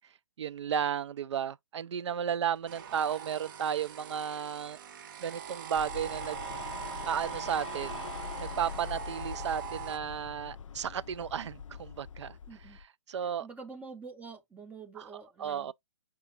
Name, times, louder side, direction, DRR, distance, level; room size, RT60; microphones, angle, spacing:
voice 1, 0.4-4.8 5.2-6.4 7.1-8.1 8.4-12.4 13.1-13.5 15.4-15.7, right 8 dB, 65° right, 0.4 m, -33 dB
sound 1, 2.7-10.0, right 9 dB, 40° right, 0.8 m, -42 dB
sound 2, 5.7-12.8, left 7 dB, 80° left, 0.4 m, -43 dB
voice 2, 12.5-12.8 13.2-15.7, right 4 dB, 10° right, 0.5 m, -47 dB
4.9 x 2.5 x 4.4 m
hypercardioid pair, 140°, 16 cm